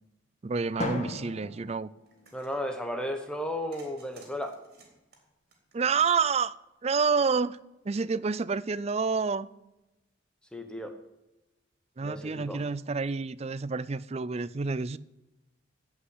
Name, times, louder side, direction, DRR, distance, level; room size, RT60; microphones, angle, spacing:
voice 1, 0.4-1.9 5.7-6.5 6.8-7.6 7.8-9.5 12.0-15.0, right 5 dB, 35° right, 0.4 m, -28 dB
Drum, 0.8-2.8, left 2 dB, 35° left, 1.7 m, -37 dB
sound 1, 2.1-2.6 3.7-6.2, right 3 dB, 55° right, 3.4 m, -56 dB
voice 2, 2.3-4.6 10.5-11.0 12.0-12.6, equal, 5° left, 1.0 m, -34 dB
16.0 x 5.7 x 9.6 m
head